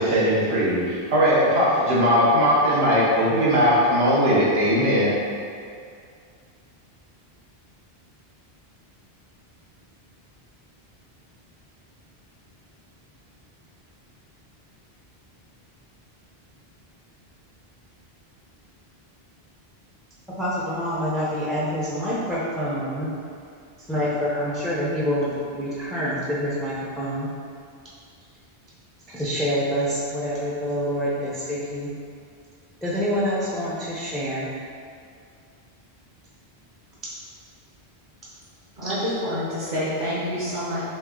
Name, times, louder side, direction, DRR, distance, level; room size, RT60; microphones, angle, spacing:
voice 1, 0.0-5.1, equal, 85° right, -7 dB, 1.2 m, -19 dB
voice 2, 20.3-23.1 23.9-27.3 29.1-31.9 32.8-34.5 38.8-38.9, equal, ahead, -8 dB, 0.4 m, -26 dB
voice 3, 38.8-40.8, equal, 55° right, -9 dB, 1.0 m, -27 dB
3.3 x 3.2 x 3.6 m, 2.3 s
omnidirectional pair, 1.0 m